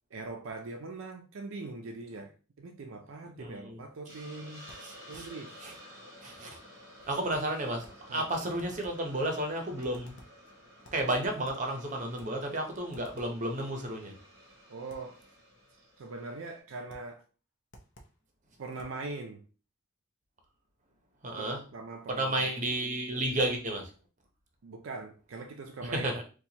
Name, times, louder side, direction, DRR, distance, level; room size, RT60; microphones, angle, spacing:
voice 1, 0.1-2.3 2.6-4.7 5.1-5.5 8.1-8.2 14.7-15.2 16.0-17.2 18.6-19.4 21.3-22.5 24.6-26.1, right 3 dB, 70° right, 0.4 m, -41 dB
voice 2, 3.4-3.8 4.8-5.3 5.6-5.7 6.2-6.6 7.1-10.2 10.9-14.2 21.2-21.6 22.1-23.9 25.8-26.2, right 1 dB, 35° right, 0.7 m, -32 dB
Hiss, 4.0-16.6, equal, 15° right, 1.0 m, -53 dB
sound 1, 4.7-5.4 7.3-8.1 8.6-9.1 9.8-10.5 10.8-11.7 12.2-12.4 12.9-13.4 14.9-15.2 16.9-17.2 17.7-18.2 18.8-19.1, equal, 55° left, 0.7 m, -55 dB
4.3 x 2.3 x 2.8 m
head